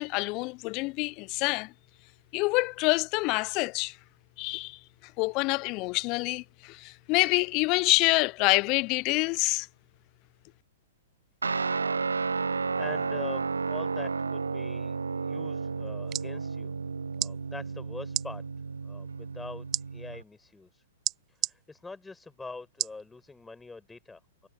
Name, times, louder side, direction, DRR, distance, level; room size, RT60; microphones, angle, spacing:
voice 1, 0.0-1.7 2.3-4.0 4.4-4.8 5.2-9.7, left 26 dB, 35° left, 0.9 m, -27 dB
Guitar, 11.4-20.2, right 4 dB, 80° right, 0.5 m, -32 dB
voice 2, 12.8-16.7 17.2-18.4 18.8-20.8 21.3-24.5, left 3 dB, 10° left, 7.7 m, -44 dB
sound 1, 15.9-16.3 17.1-17.3 18.1-18.3 19.7-19.8 21.0-21.5 22.8-23.0 23.6-23.7, right 13 dB, 30° right, 0.6 m, -30 dB
figure-of-eight pair, 110°, 0 cm